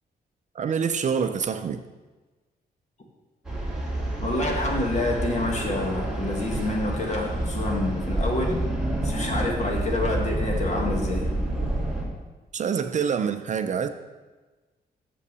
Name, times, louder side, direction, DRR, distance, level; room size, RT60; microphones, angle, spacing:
voice 1, 0.5-1.8 12.5-13.9, right 7 dB, 45° right, 9 dB, 0.5 m, -26 dB
sound 1, 3.4-12.0, right 1 dB, ahead, 2.2 m, -28 dB
voice 2, 4.2-8.5 9.0-11.3, left 2 dB, 45° left, 0 dB, 1.8 m, -27 dB
7.1 x 5.6 x 6.8 m, 1.2 s
wide cardioid pair, 130°, 17 cm